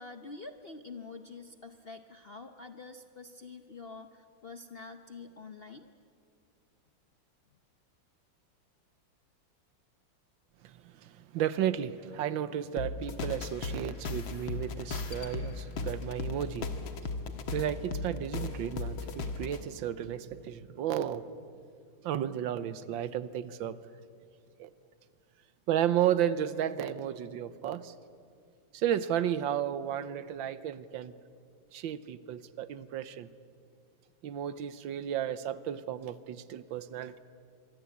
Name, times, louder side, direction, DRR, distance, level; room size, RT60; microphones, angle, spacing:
voice 1, 0.0-5.9, left 4 dB, 45° left, 0.7 m, -46 dB
voice 2, 10.6-16.7 17.5-21.3 22.0-23.8 24.6-24.7 25.7-27.9 28.7-31.1 31.7-33.3 34.2-37.2, right 10 dB, 80° right, 1.6 m, -33 dB
sound 1, 12.8-19.6, left 4 dB, 85° left, 2.3 m, -36 dB
25.0 x 23.5 x 8.5 m
omnidirectional pair, 2.1 m